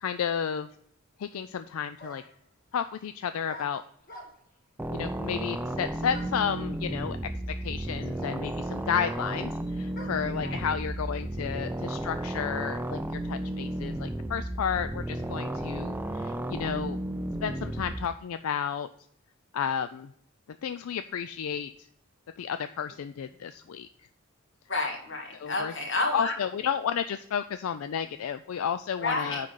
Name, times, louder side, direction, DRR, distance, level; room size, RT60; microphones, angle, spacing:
voice 1, 0.0-0.7 1.2-2.2 2.7-3.8 4.9-17.0 17.4-18.9 19.5-20.1 20.6-21.9 22.4-23.9 25.3-25.7 26.1-29.5, left 7 dB, 85° left, 11 dB, 0.4 m, -32 dB
sound 1, 2.0-2.5 3.5-4.6 6.1-6.5 7.5-7.6 7.8-10.4, left 1 dB, 45° left, 1.4 m, -48 dB
sound 2, 4.8-18.1, right 1 dB, 10° right, 0.3 m, -33 dB
voice 2, 24.7-26.3 29.0-29.4, left 2 dB, 60° left, 0 dB, 2.2 m, -30 dB
9.6 x 3.9 x 5.6 m, 0.68 s
head